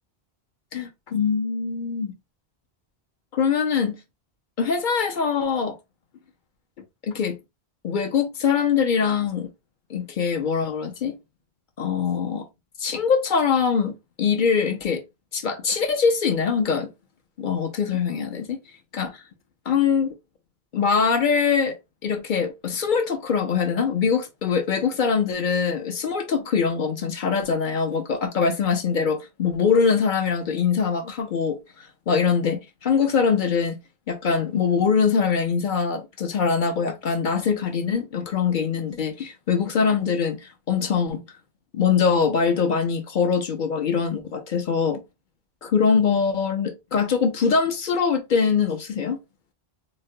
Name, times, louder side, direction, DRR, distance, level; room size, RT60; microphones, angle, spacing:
voice 1, 0.7-2.1 3.3-4.0 4.6-5.8 7.0-7.4 7.8-9.5 9.9-11.1 11.8-12.5 12.8-15.0 15.3-16.9 17.4-18.6 18.9-19.2 19.7-20.1 20.7-21.8 22.0-33.8 34.1-41.2 41.7-45.0 45.6-49.2, left 6 dB, 55° left, 0.7 m, -23 dB
3.9 x 2.1 x 2.7 m
omnidirectional pair, 1.1 m